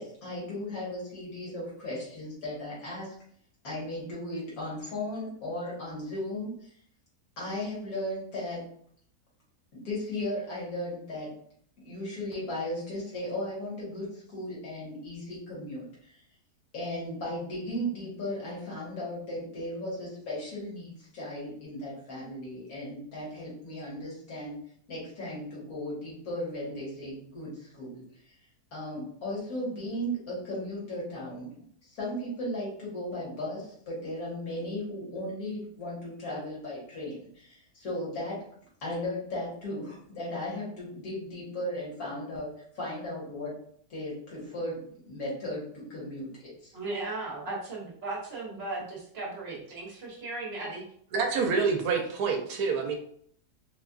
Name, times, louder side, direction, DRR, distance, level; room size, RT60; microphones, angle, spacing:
voice 1, 0.0-3.1 3.6-6.7 7.4-8.7 9.7-11.3 11.8-16.2 16.7-24.6 24.9-28.3 28.7-31.5 31.8-38.4 38.8-42.5 42.8-43.5 43.9-44.8 45.1-46.7, left 1 dB, 60° left, -6 dB, 1.8 m, -36 dB
voice 2, 46.7-50.8, right 2 dB, 45° right, -4 dB, 1.0 m, -36 dB
voice 3, 51.1-52.9, right 5 dB, 75° right, 3 dB, 1.1 m, -27 dB
4.1 x 2.3 x 2.4 m, 0.62 s
omnidirectional pair, 1.7 m